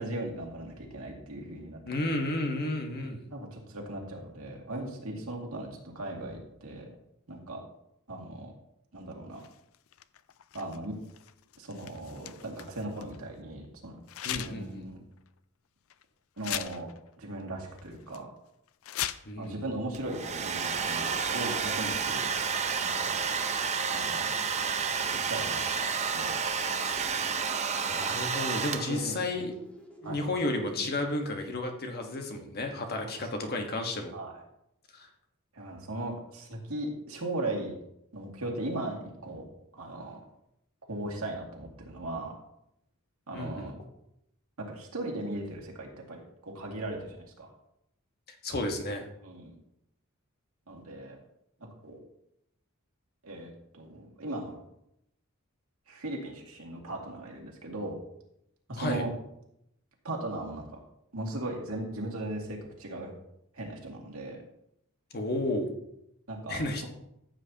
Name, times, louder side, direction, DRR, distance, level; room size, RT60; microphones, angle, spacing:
voice 1, 0.0-2.1 3.3-5.7 5.9-6.9 7.3-7.6 8.1-8.5 8.9-9.4 10.5-10.9 11.6-14.0 14.2-15.1 16.4-16.9 17.2-18.3 19.4-22.3 22.8-23.2 23.9-24.4 25.3-26.4 28.2-28.3 28.9-29.2 30.0-30.2 33.0-33.1 33.4-33.5 34.1-34.4 35.5-37.7 38.1-39.4 39.7-40.2 40.9-42.3 43.3-43.7 44.6-47.5 49.2-49.6 50.7-51.2 51.8-52.0 53.2-54.6 55.9-58.0 58.7-59.1 60.0-60.8 61.1-63.1 63.5-64.4 66.3-66.9, right 1 dB, 80° right, -1 dB, 2.3 m, -38 dB
voice 2, 1.9-3.2 14.2-14.8 19.2-19.6 27.9-29.6 30.0-34.2 34.9-35.1 43.3-43.7 48.4-49.1 58.7-59.0 65.1-65.7 66.5-66.9, left 2 dB, 45° left, 4 dB, 1.4 m, -32 dB
sound 1, 9.3-13.2 14.1-14.8 15.2-15.3 15.9-16.0 16.4-17.1 17.4-17.5 17.8-18.2 18.7-19.5 20.4-20.5 20.8-21.6 22.7-23.2, left 12 dB, 70° left, 0.4 m, -40 dB
Domestic sounds home sounds, 19.9-29.2, right 6 dB, 30° right, 0.7 m, -30 dB
sound 2, 26.9-30.9, equal, 5° left, 1.5 m, -52 dB
14.5 x 7.8 x 2.9 m, 0.79 s
head